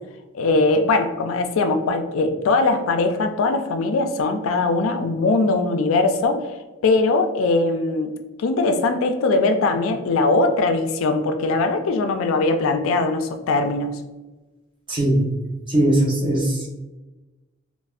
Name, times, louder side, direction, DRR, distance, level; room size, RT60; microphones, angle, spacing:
voice 1, 0.3-6.5 6.8-8.1 8.4-14.0, left 3 dB, 80° left, 7 dB, 0.3 m, -20 dB
voice 2, 14.9-15.2 15.7-16.7, right 1 dB, 25° right, -3 dB, 0.6 m, -19 dB
3.2 x 2.1 x 2.3 m, 1.1 s
head